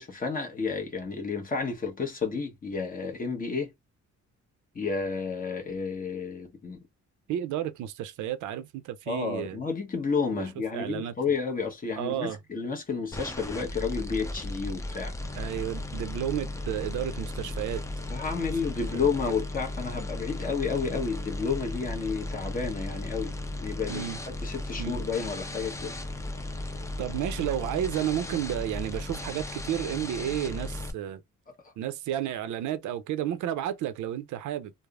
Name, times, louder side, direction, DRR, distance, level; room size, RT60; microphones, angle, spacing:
voice 1, 0.0-3.7 4.7-6.8 9.1-15.1 18.1-23.3 23.6-24.1 24.4-25.9, left 5 dB, 30° left, 0.9 m, -31 dB
voice 2, 7.3-9.6 10.3-10.4 10.7-11.1 12.0-12.4 15.3-17.8 18.9-19.1 23.9-24.2 24.8-25.0 27.0-31.2 31.8-34.7, right 11 dB, 75° right, 0.5 m, -32 dB
sound 1, 13.1-30.9, left 2 dB, 10° left, 0.5 m, -36 dB
3.2 x 2.0 x 2.3 m
cardioid pair, 90°, 30 cm